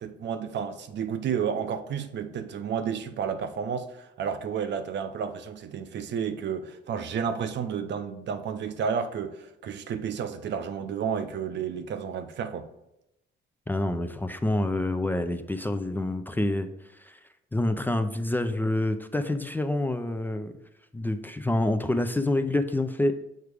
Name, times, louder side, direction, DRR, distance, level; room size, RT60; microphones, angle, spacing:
voice 1, 0.0-12.7, right 7 dB, 65° right, 0.6 m, -31 dB
voice 2, 13.7-16.7 17.0-17.2 17.5-20.5 20.9-23.1, left 1 dB, 10° left, 0.4 m, -27 dB
6.5 x 4.7 x 3.4 m
cardioid pair, 90°, 20 cm